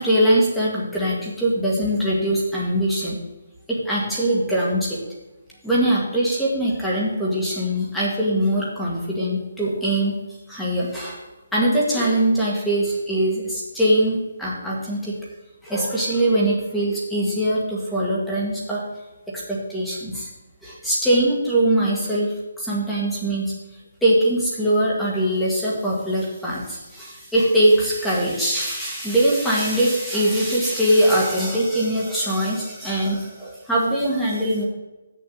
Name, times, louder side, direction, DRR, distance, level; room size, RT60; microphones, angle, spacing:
voice 1, 0.0-3.2 3.7-5.0 5.6-10.2 10.5-11.2 11.5-15.2 15.6-18.8 19.3-20.3 20.6-23.5 24.0-34.6, right 1 dB, 5° left, -6 dB, 1.5 m, -22 dB
7.8 x 6.8 x 6.8 m, 1.1 s
hypercardioid pair, 175°, 0 cm